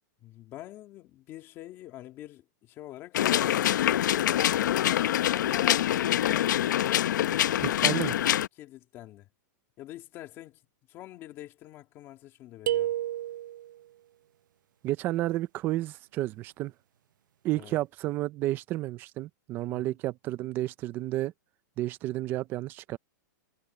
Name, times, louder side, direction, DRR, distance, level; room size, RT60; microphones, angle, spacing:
voice 1, 0.2-3.8 4.2-6.7 7.2-8.0 8.6-9.3 9.8-10.6 10.9-12.9 17.5-17.8 19.7-19.9, left 14 dB, 25° left, 2.4 m, -45 dB
sound 1, 3.1-8.5, left 12 dB, 75° left, 0.7 m, -25 dB
voice 2, 7.6-8.1 14.8-16.7 17.4-21.3 21.8-23.0, right 16 dB, 20° right, 0.4 m, -31 dB
sound 2, 12.7-13.8, right 12 dB, 85° right, 0.6 m, -30 dB
supercardioid pair, 175°, 10 cm